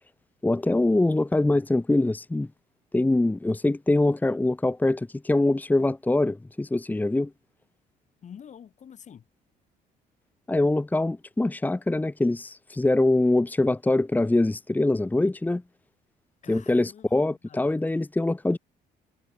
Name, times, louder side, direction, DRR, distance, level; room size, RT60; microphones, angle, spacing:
voice 1, 0.4-2.5 2.9-7.3 10.5-15.6 16.5-18.6, left 2 dB, 10° left, 1.4 m, -23 dB
voice 2, 8.2-9.2 16.4-17.8, left 8 dB, 45° left, 5.7 m, -48 dB
cardioid pair, 110°, 17 cm